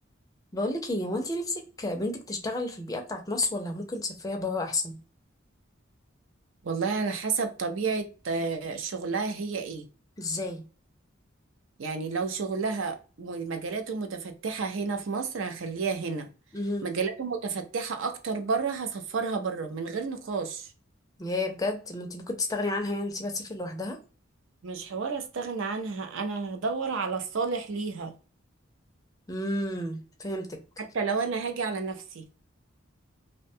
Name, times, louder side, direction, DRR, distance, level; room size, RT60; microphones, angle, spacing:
voice 1, 0.5-5.0 10.2-10.6 16.5-16.8 21.2-24.0 29.3-30.6, left 2 dB, 20° left, 0.4 m, -31 dB
voice 2, 6.6-9.9 11.8-16.3 16.8-20.7 24.6-28.1 30.8-32.2, right 4 dB, 70° right, 0.5 m, -31 dB
2.6 x 2.1 x 2.6 m
head